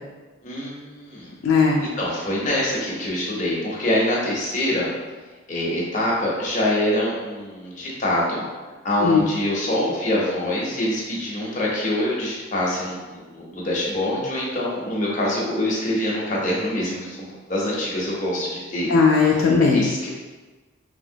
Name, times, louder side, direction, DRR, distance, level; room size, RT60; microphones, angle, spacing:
voice 1, 0.4-1.3 1.8-4.9 5.5-8.4 8.8-18.9 19.6-20.1, left 1 dB, 35° left, -5 dB, 0.7 m, -25 dB
voice 2, 1.4-1.8 9.0-9.2 18.9-20.1, left 5 dB, 80° left, -2 dB, 0.3 m, -18 dB
2.9 x 2.7 x 2.7 m, 1.3 s
head